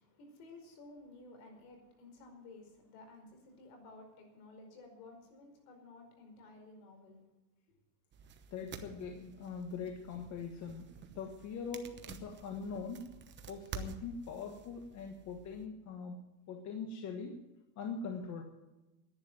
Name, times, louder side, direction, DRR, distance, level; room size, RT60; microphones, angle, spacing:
voice 1, 0.0-7.2, left 2 dB, 65° left, 4 dB, 5.0 m, -54 dB
sound 1, 8.1-15.7, right 5 dB, 20° right, 1.0 m, -50 dB
voice 2, 8.5-13.1 13.4-16.2 16.5-17.4 17.8-18.4, left 5 dB, 35° left, 4 dB, 1.4 m, -42 dB
11.0 x 9.9 x 9.2 m, 1.0 s
supercardioid pair, 145°, 49 cm